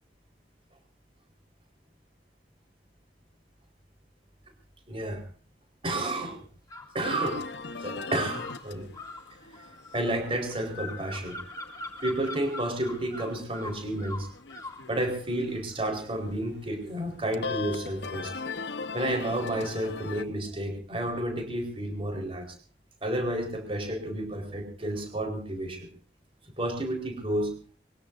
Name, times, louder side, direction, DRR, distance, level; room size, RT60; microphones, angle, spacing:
voice 1, 4.9-5.2 5.8-6.4 6.9-7.5 7.8-8.9 9.9-11.4 12.0-14.3 14.9-18.3 18.9-22.5 23.0-25.9 26.6-27.5, right 1 dB, 30° right, 3 dB, 4.6 m, -31 dB
sound 1, 6.7-7.4 8.3-14.8, left 2 dB, 20° left, 2.9 m, -42 dB
sound 2, 7.0-20.2, left 4 dB, 80° left, 1.1 m, -40 dB
24.5 x 22.0 x 2.7 m, 0.41 s
head